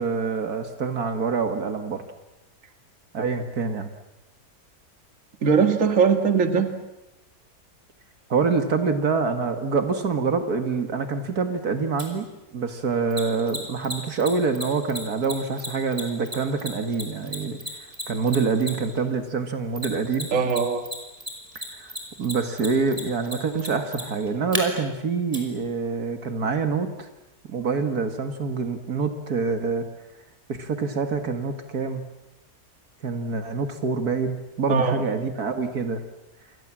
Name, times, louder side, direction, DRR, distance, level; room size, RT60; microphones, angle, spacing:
voice 1, 0.0-2.0 3.1-3.9 8.3-12.3 12.5-17.6 18.1-20.3 21.6-27.1 27.5-29.8 30.5-32.0 33.0-36.0, right 4 dB, 70° right, 7 dB, 2.3 m, -26 dB
voice 2, 5.4-6.7 20.3-20.8 34.7-35.0, right 5 dB, 55° right, 7 dB, 2.1 m, -20 dB
Mechanisms, 12.0-12.1 13.1-19.0 19.8-20.6 20.8-24.6 25.3-25.4, equal, 20° right, 5.0 m, -32 dB
29.5 x 24.5 x 7.5 m, 0.96 s
omnidirectional pair, 1.7 m